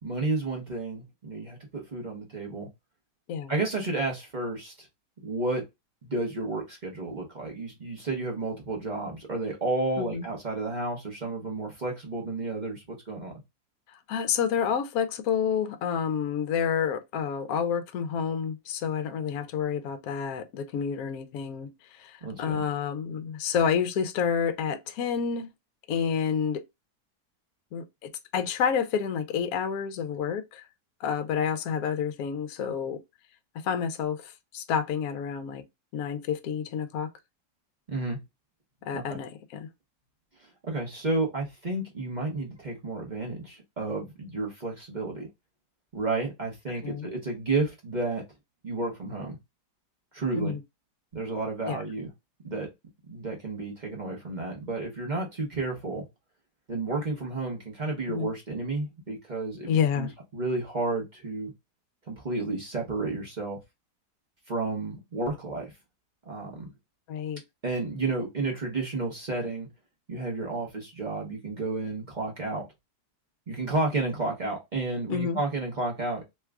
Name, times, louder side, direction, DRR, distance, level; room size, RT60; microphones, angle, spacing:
voice 1, 0.0-2.7 3.5-4.9 5.2-5.6 6.0-13.4 22.2-22.6 37.9-38.2 38.9-39.2 40.6-45.3 45.9-48.2 48.6-49.4 50.1-50.6 51.1-52.1 52.4-52.7 53.1-56.0 56.7-61.5 62.1-63.6 64.5-65.7 66.3-66.7 67.6-69.7 70.1-72.6 73.5-76.2, right 3 dB, 35° right, 0.8 m, -31 dB
voice 2, 10.0-10.3 13.9-25.5 25.9-26.6 27.7-30.6 31.0-33.0 33.5-35.6 35.9-37.1 38.8-39.7 46.8-47.1 50.3-50.6 51.7-51.8 58.1-58.3 59.7-60.1 67.1-67.4 75.1-75.4, left 7 dB, 70° left, 1.0 m, -29 dB
3.1 x 2.3 x 3.4 m
omnidirectional pair, 1.8 m